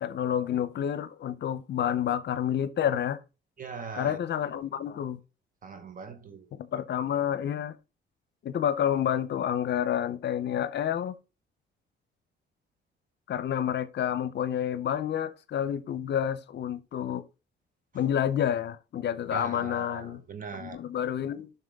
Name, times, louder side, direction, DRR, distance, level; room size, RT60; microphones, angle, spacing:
voice 1, 0.0-3.2 3.9-5.2 6.5-7.7 8.4-11.2 13.3-17.2 17.9-20.2 20.6-21.5, left 9 dB, 60° left, 0.7 m, -29 dB
voice 2, 3.6-4.2 5.6-6.6 19.3-20.8, right 5 dB, 45° right, 1.1 m, -40 dB
7.3 x 5.8 x 3.6 m
cardioid pair, 90°, 20 cm